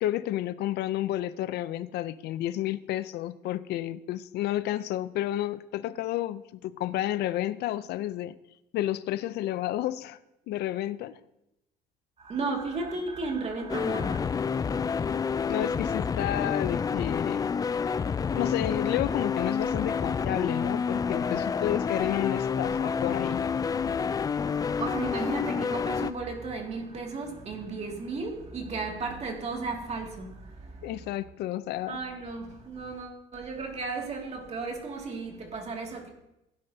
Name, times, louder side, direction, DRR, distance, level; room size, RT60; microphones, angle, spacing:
voice 1, 0.0-8.4 8.7-10.2 10.5-11.2 15.5-17.5 18.3-23.5 30.8-32.0, left 13 dB, 75° left, 0.5 m, -31 dB
voice 2, 12.2-14.3 24.4-31.1 31.9-36.1, right 3 dB, 40° right, 2.2 m, -35 dB
sound 1, 13.7-26.1, left 6 dB, 20° left, 0.3 m, -29 dB
16.5 x 10.0 x 2.8 m
cardioid pair, 110°, 17 cm